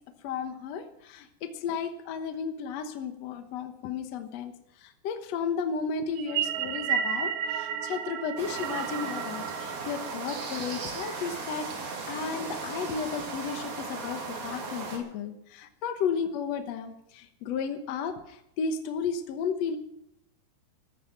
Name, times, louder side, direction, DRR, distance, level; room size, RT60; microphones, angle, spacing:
voice 1, 0.2-4.5 4.8-11.7 12.1-19.8, left 6 dB, 65° left, 7 dB, 1.6 m, -33 dB
sound 1, 6.2-10.7, right 8 dB, 85° right, 1.7 m, -32 dB
sound 2, 8.4-15.0, right 4 dB, 70° right, 4.5 m, -37 dB
15.0 x 13.5 x 5.9 m, 0.78 s
omnidirectional pair, 4.5 m